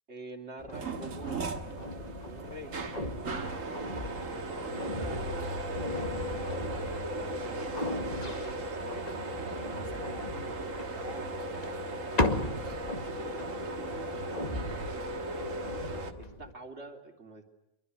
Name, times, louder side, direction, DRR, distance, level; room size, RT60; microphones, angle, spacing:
voice 1, 0.1-1.7 2.3-2.8 3.6-3.9 4.2-5.8 6.9-9.1 13.1-15.6 16.2-17.4, right 2 dB, 50° right, 4 dB, 3.4 m, -47 dB
sound 1, 0.6-16.5, left 1 dB, 30° left, 2.1 m, -38 dB
sound 2, 0.7-16.1, right 2 dB, 70° right, 2.0 m, -37 dB
voice 2, 9.3-11.8, left 3 dB, 60° left, 7 dB, 2.2 m, -50 dB
25.0 x 23.5 x 9.6 m, 0.86 s
omnidirectional pair, 1.4 m